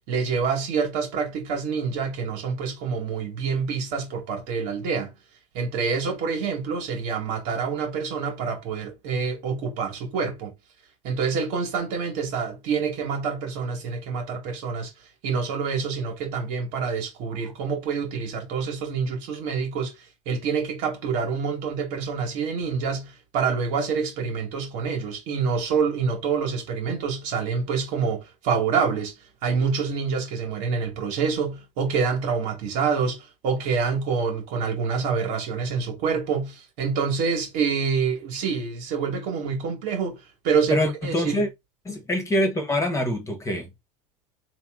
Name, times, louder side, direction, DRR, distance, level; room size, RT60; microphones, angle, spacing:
voice 1, 0.1-5.1 5.5-10.5 11.0-14.9 15.2-19.9 20.3-29.1 29.4-41.5, right 5 dB, 65° right, 1.9 m, -27 dB
voice 2, 40.7-41.5 41.8-43.7, left 1 dB, 20° left, 1.4 m, -25 dB
3.6 x 2.9 x 3.7 m
hypercardioid pair, 95°, 17 cm